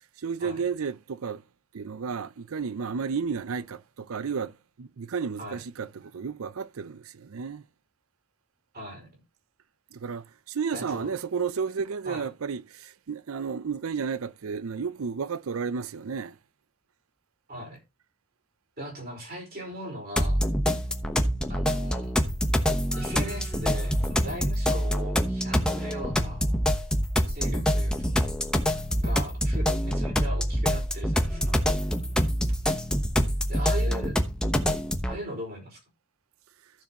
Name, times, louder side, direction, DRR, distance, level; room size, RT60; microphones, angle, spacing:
voice 1, 0.2-1.4 1.7-7.6 9.9-16.4, right 6 dB, 85° right, 0.5 m, -32 dB
voice 2, 8.7-9.1 10.7-11.1 12.0-12.3 17.5-17.8 18.8-20.4 21.5-22.1 22.9-26.4 27.3-28.3 29.0-31.6 33.5-34.2 35.1-35.8, equal, 45° right, 4.9 m, -39 dB
sound 1, 20.2-35.2, equal, 5° left, 1.0 m, -26 dB
15.0 x 6.9 x 2.9 m
head